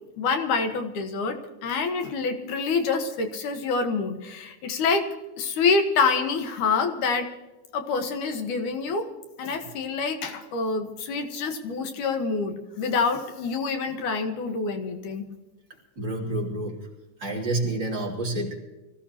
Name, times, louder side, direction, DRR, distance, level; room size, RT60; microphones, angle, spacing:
voice 1, 0.2-5.1 5.4-7.3 7.7-9.1 9.4-15.3, left 4 dB, 80° left, 5 dB, 2.8 m, -26 dB
voice 2, 16.0-16.8 17.2-18.6, right 2 dB, 35° right, -3 dB, 3.5 m, -28 dB
24.5 x 15.5 x 2.9 m, 1.1 s
omnidirectional pair, 3.5 m